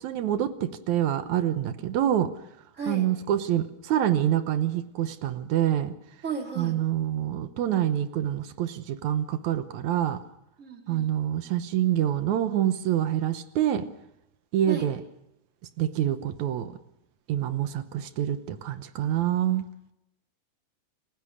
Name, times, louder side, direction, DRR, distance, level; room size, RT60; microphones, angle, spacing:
voice 1, 0.0-2.3 2.9-5.9 6.6-10.2 10.9-13.9 14.5-15.0 15.8-16.7 17.3-19.7, right 11 dB, 80° right, 11 dB, 2.4 m, -26 dB
voice 2, 2.7-3.1 6.2-6.8 10.6-11.1 14.7-14.9, right 5 dB, 25° right, 3 dB, 2.9 m, -34 dB
29.0 x 16.0 x 6.4 m, 0.83 s
omnidirectional pair, 3.3 m